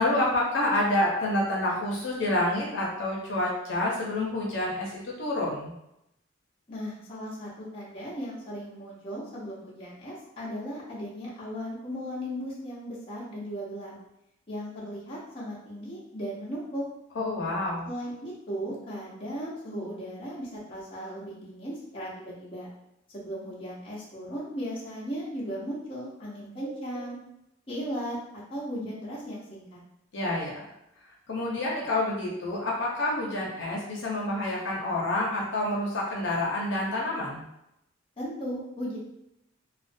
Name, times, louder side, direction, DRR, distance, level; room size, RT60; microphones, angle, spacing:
voice 1, 0.0-5.7 17.2-17.9 30.1-30.5 31.3-37.4, left 1 dB, 70° left, -4 dB, 0.6 m, -28 dB
voice 2, 6.7-13.9 14.5-16.9 17.8-22.7 23.1-27.2 27.7-29.8 38.2-39.0, equal, 30° left, -7 dB, 0.7 m, -36 dB
2.4 x 2.1 x 2.5 m, 0.83 s
head